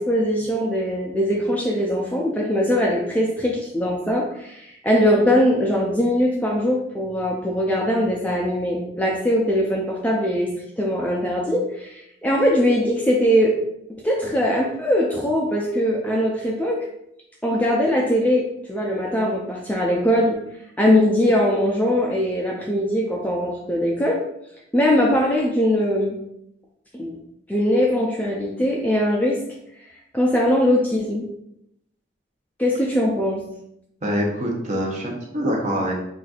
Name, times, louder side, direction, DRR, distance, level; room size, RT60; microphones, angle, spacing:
voice 1, 0.0-10.5 10.8-13.5 14.0-16.8 17.4-20.4 20.8-24.2 24.7-26.2 26.9-27.2 27.5-29.4 30.1-31.2 32.6-33.4, equal, 10° left, -2 dB, 0.4 m, -21 dB
voice 2, 34.0-36.0, equal, 40° right, -1 dB, 0.7 m, -24 dB
5.7 x 2.5 x 2.4 m, 0.78 s
head